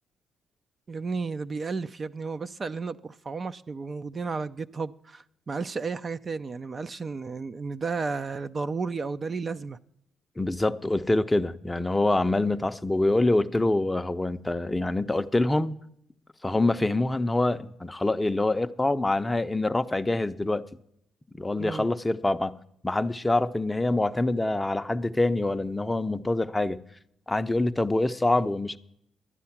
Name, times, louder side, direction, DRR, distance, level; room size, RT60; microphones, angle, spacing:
voice 1, 0.9-9.8 21.6-21.9, right 4 dB, 35° right, 0.4 m, -33 dB
voice 2, 10.4-15.8 16.4-20.6 21.3-22.5 22.8-26.8 27.3-28.8, left 2 dB, 15° left, 0.5 m, -25 dB
12.5 x 9.7 x 5.8 m
cardioid pair, 90°, 0 cm